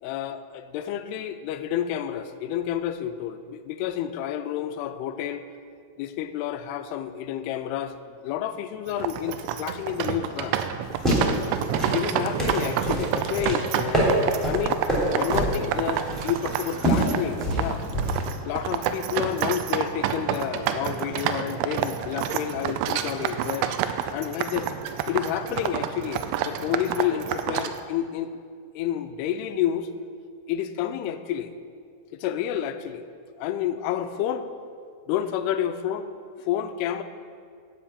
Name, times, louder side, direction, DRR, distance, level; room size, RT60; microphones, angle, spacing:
voice 1, 0.0-5.5 6.0-8.0 8.2-10.6 11.9-14.8 15.1-17.8 18.5-23.7 24.1-24.7 25.1-28.4 28.8-29.9 30.5-31.5 32.1-33.1 33.4-34.5 35.1-36.1 36.4-37.0, left 10 dB, 80° left, 10 dB, 2.5 m, -29 dB
sound 1, 8.9-27.8, right 9 dB, 85° right, 2.5 m, -29 dB
sound 2, 10.8-18.3, equal, ahead, 2.4 m, -26 dB
11.5 x 5.8 x 8.4 m, 2.2 s
omnidirectional pair, 4.9 m